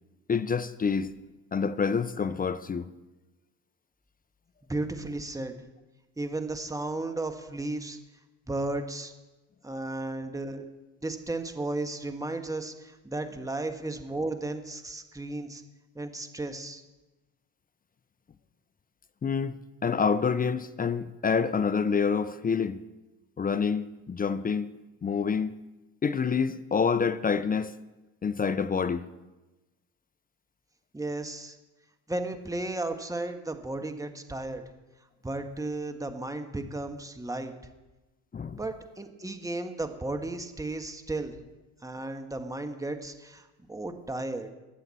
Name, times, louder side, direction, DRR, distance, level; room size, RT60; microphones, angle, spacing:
voice 1, 0.3-1.1 1.5-2.9 19.2-22.8 23.4-24.7 25.0-25.5 26.0-27.7 28.2-29.1 38.3-38.6, left 6 dB, 20° left, 0.6 m, -27 dB
voice 2, 4.7-5.6 6.2-8.0 8.5-9.1 9.6-10.6 11.0-15.6 15.9-16.8 30.9-31.6 32.1-34.6 35.2-37.5 38.6-41.4 41.8-44.5, right 2 dB, 10° right, 1.4 m, -34 dB
20.0 x 8.0 x 4.3 m
hypercardioid pair, 70°, 38 cm